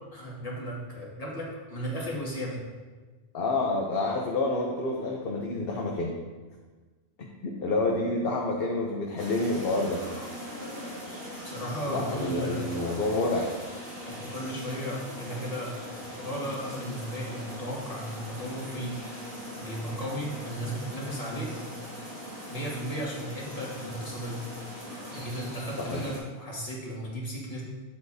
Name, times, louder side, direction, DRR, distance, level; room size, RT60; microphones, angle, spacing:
voice 1, 0.0-2.6 11.4-12.7 14.0-15.7 16.0-19.0 19.6-21.5 22.5-24.4 25.1-27.6, equal, 30° left, -4 dB, 1.9 m, -35 dB
voice 2, 3.3-6.2 7.2-10.0 11.9-13.5 25.8-26.0, left 2 dB, 55° left, 0 dB, 0.9 m, -28 dB
sound 1, 9.2-26.2, equal, 50° right, 3.0 m, -40 dB
8.7 x 7.9 x 2.7 m, 1.3 s
omnidirectional pair, 1.2 m